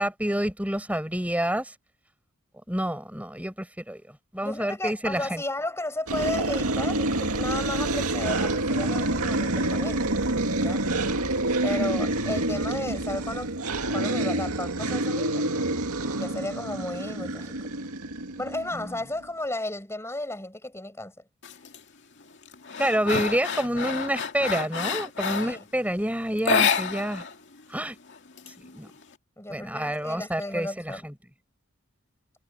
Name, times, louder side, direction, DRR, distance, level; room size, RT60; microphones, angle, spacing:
voice 1, 0.0-1.7 2.7-4.0 4.3-5.4 22.8-27.2 27.7-27.9 28.7-28.9 29.5-31.1, right 1 dB, 5° right, 6.5 m, -28 dB
voice 2, 4.4-10.1 10.5-10.9 11.6-15.5 16.2-17.6 18.4-21.1 25.4-25.7 29.4-31.0, left 1 dB, 10° left, 7.6 m, -34 dB
sound 1, 6.1-19.0, right 2 dB, 90° right, 2.2 m, -27 dB
sound 2, 21.4-21.8 22.2-25.6 26.4-27.3 27.6-27.7 28.1-29.0, left 6 dB, 55° left, 2.4 m, -28 dB
head